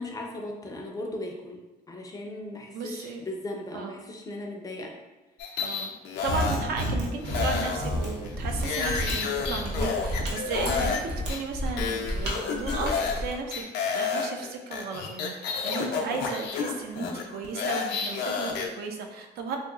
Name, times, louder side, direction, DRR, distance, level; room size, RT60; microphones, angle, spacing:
voice 1, 0.0-1.6 1.9-4.9 10.7-10.9 16.0-16.2, left 1 dB, 20° left, 1 dB, 0.4 m, -37 dB
voice 2, 2.7-3.2 3.7-4.0 5.6-5.9 6.2-19.6, right 4 dB, 65° right, 3 dB, 0.4 m, -35 dB
sound 1, 5.4-6.9 7.2-11.0 11.3-11.4 11.8-13.2 13.5-18.7, left 5 dB, 85° left, 0.5 m, -30 dB
Mechanisms, 6.2-13.3, equal, 85° right, 0.8 m, -31 dB
2.9 x 2.8 x 2.3 m, 1.1 s
cardioid pair, 110°, 17 cm